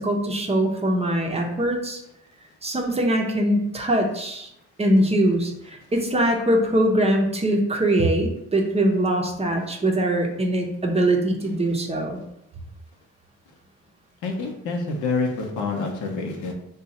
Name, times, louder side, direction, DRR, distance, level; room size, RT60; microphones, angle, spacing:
voice 1, 0.0-2.0 2.6-4.5 4.8-12.2, right 1 dB, 20° right, 1 dB, 0.6 m, -22 dB
voice 2, 14.2-16.5, left 3 dB, 80° left, 1 dB, 0.8 m, -27 dB
2.7 x 2.3 x 4.0 m, 0.76 s
cardioid pair, 90°, 30 cm